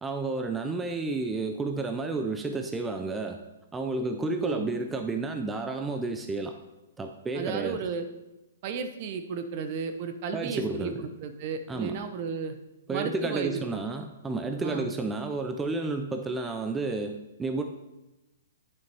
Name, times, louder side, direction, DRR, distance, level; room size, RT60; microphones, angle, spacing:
voice 1, 0.0-3.4 3.7-6.5 7.0-7.8 10.3-11.1 11.7-12.0 12.9-17.6, right 3 dB, 10° right, 5 dB, 0.5 m, -31 dB
voice 2, 7.3-8.1 8.6-12.6 12.9-13.8 14.6-14.9, right 5 dB, 45° right, 8 dB, 0.8 m, -34 dB
8.8 x 6.3 x 3.5 m, 0.98 s
hypercardioid pair, 135°, 0 cm